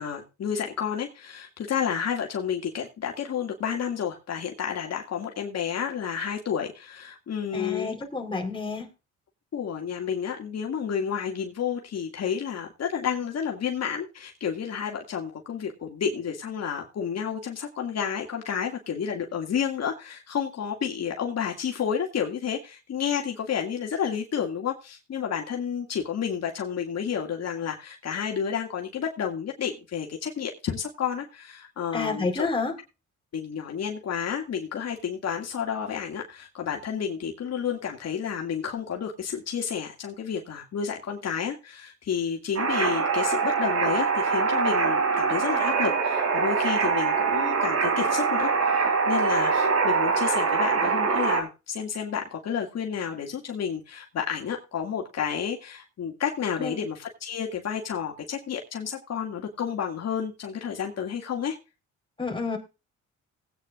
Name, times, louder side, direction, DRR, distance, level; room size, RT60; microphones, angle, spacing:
voice 1, 0.0-8.0 9.5-32.5 33.3-61.6, left 7 dB, 60° left, 2 dB, 2.2 m, -31 dB
voice 2, 7.5-8.9 31.9-32.7 56.6-56.8 62.2-62.6, left 3 dB, 15° left, 2 dB, 4.0 m, -29 dB
sound 1, 42.6-51.4, right 5 dB, 55° right, 4.0 m, -24 dB
18.5 x 9.2 x 2.4 m, 0.29 s
cardioid pair, 90°, 30 cm